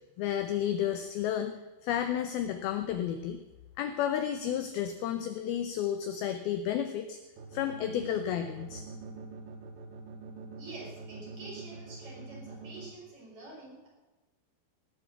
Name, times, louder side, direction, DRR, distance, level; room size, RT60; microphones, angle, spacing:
voice 1, 0.2-1.5 1.8-3.4 3.8-7.2 7.5-8.8, left 10 dB, 80° left, 8 dB, 2.2 m, -31 dB
sound 1, 7.4-12.9, right 4 dB, 70° right, 3.8 m, -44 dB
voice 2, 10.6-13.9, right 2 dB, 30° right, -2 dB, 4.9 m, -47 dB
17.5 x 8.4 x 7.2 m, 1.1 s
omnidirectional pair, 5.3 m